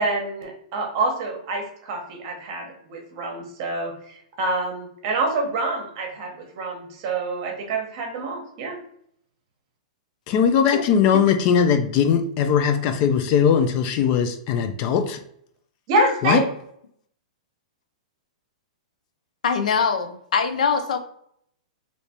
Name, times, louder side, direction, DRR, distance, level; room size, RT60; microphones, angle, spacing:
voice 1, 0.0-8.8 15.9-16.4, right 2 dB, 40° right, 0.9 m, -26 dB
voice 2, 10.3-15.2 16.2-16.4, left 7 dB, 30° left, 0.3 m, -20 dB
voice 3, 19.4-21.0, left 5 dB, 85° left, 0.5 m, -23 dB
3.2 x 2.7 x 2.8 m
hypercardioid pair, 165°, 4 cm